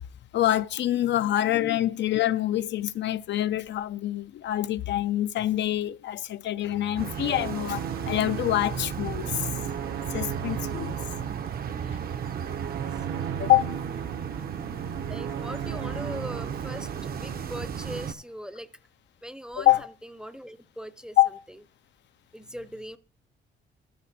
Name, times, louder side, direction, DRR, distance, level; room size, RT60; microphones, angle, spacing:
voice 1, 0.3-9.5 10.1-11.0 11.9-12.0 13.4-13.7 19.6-19.8 21.2-21.3, left 14 dB, 65° left, 0.4 m, -25 dB
sound 1, 6.6-18.0, right 8 dB, 75° right, 1.0 m, -37 dB
sound 2, 7.0-18.1, right 7 dB, 50° right, 0.7 m, -34 dB
voice 2, 13.1-13.5 15.1-18.7 19.2-21.2 21.5-21.6 22.3-23.0, equal, 5° right, 0.6 m, -41 dB
13.5 x 5.3 x 4.1 m
cardioid pair, 90°, 20 cm